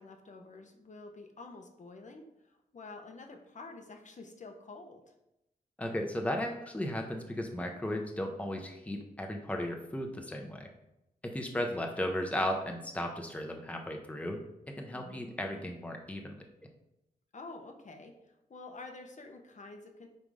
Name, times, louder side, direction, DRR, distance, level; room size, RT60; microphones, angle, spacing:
voice 1, 0.0-5.0 14.9-15.3 17.3-20.1, left 3 dB, 50° left, 4 dB, 1.0 m, -49 dB
voice 2, 5.8-10.7 11.2-14.4 14.7-16.4, left 1 dB, 10° left, 3 dB, 0.9 m, -35 dB
9.3 x 3.4 x 4.9 m, 0.88 s
wide cardioid pair, 120°, 16 cm